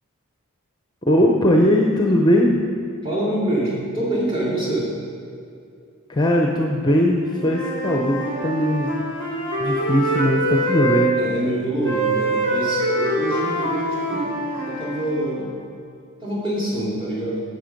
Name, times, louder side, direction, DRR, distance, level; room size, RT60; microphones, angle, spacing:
voice 1, 1.1-2.6 6.1-8.9 9.6-11.2, equal, 20° left, 1 dB, 0.6 m, -19 dB
voice 2, 3.0-4.9 11.2-14.3 14.7-15.5 16.2-17.4, right 1 dB, 25° right, -5 dB, 2.9 m, -25 dB
Wind instrument woodwind instrument, 7.2-11.1 11.8-15.4, right 1 dB, 55° right, 2.8 m, -24 dB
11.0 x 7.9 x 5.2 m, 2.4 s
head